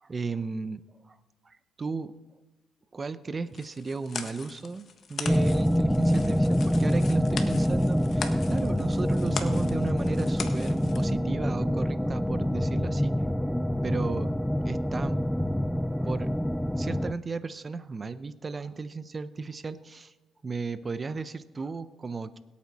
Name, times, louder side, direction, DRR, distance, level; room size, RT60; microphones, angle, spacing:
voice 1, 0.0-1.2 1.4-2.1 2.9-4.8 5.1-13.1 13.8-14.3 14.6-15.3 16.0-16.3 16.7-20.1 20.4-22.4, right 4 dB, 30° right, 13 dB, 0.6 m, -35 dB
sound 1, 3.5-11.1, left 6 dB, 55° left, 1.3 m, -40 dB
sound 2, 5.2-17.1, equal, 5° left, 0.3 m, -26 dB
22.0 x 8.5 x 4.2 m, 1.1 s
cardioid pair, 90°, 0 cm